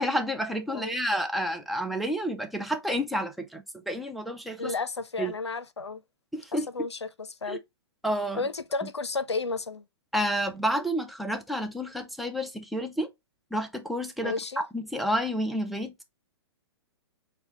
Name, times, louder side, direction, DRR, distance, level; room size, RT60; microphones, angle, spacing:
voice 1, 0.0-4.7 5.2-5.3 6.3-6.7 7.5-7.6 8.0-8.4 10.1-13.1 13.5-14.4 14.7-16.0, equal, ahead, 0.4 m, -30 dB
voice 2, 4.6-6.0 6.5-7.6 8.4-9.9 14.2-14.6, left 3 dB, 80° left, 0.5 m, -32 dB
5.9 x 2.2 x 2.7 m
figure-of-eight pair, 115°, 14 cm